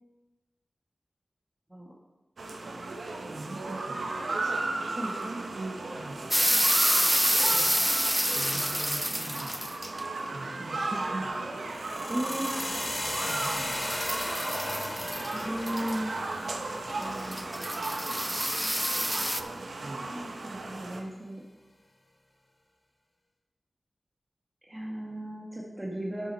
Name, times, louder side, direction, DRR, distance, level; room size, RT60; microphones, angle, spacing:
sound 1, 2.4-21.0, right 2 dB, 85° right, 0.9 m, -35 dB
voice 1, 3.3-4.1 5.2-6.2 7.5-7.7 8.3-9.5 10.3-11.3 13.2-14.0 19.8-20.1, right 2 dB, 45° right, 2 dB, 1.3 m, -41 dB
sound 2, 6.3-10.0 12.3-16.0 17.0-19.4, equal, 5° right, 0.4 m, -28 dB
sound 3, 11.6-19.7, left 1 dB, 35° left, 1.5 m, -37 dB
voice 2, 12.1-12.5 15.3-16.1 16.9-17.5 20.1-21.4 24.7-26.3, equal, 20° right, -2 dB, 1.5 m, -36 dB
9.5 x 6.8 x 4.4 m, 1.1 s
wide cardioid pair, 70°, 0 cm